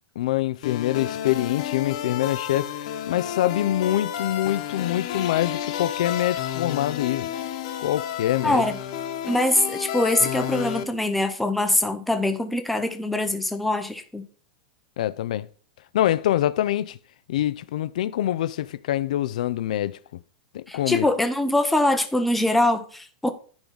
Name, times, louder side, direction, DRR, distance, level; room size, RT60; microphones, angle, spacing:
voice 1, 0.2-7.3 7.8-8.6 15.0-15.5 15.9-17.0 17.3-20.0 20.5-21.1, left 13 dB, 75° left, 0.5 m, -25 dB
sound 1, 0.6-10.8, left 10 dB, 55° left, 1.3 m, -31 dB
voice 2, 8.4-8.8 9.3-14.3 20.7-23.3, left 1 dB, 5° left, 0.8 m, -23 dB
10.5 x 4.0 x 6.2 m
supercardioid pair, 165°, 4 cm